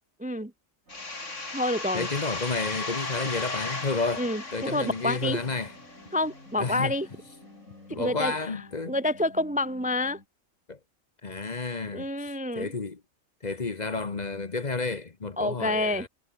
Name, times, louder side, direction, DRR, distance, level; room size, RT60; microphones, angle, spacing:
voice 1, 0.2-0.5 1.5-2.1 4.2-5.4 6.1-7.1 7.9-8.5 8.9-10.2 11.9-12.7 15.4-16.1, left 1 dB, 5° right, 0.7 m, -28 dB
sound 1, 0.9-6.4, left 3 dB, 65° left, 3.9 m, -36 dB
sound 2, 0.9-8.6, right 2 dB, 75° right, 7.1 m, -56 dB
voice 2, 1.9-5.7 6.6-6.9 7.9-9.0 10.7-10.8 11.2-13.0 13.4-16.1, left 3 dB, 35° left, 1.2 m, -31 dB
sound 3, 3.7-10.3, left 3 dB, 85° left, 4.6 m, -52 dB
omnidirectional pair, 1.4 m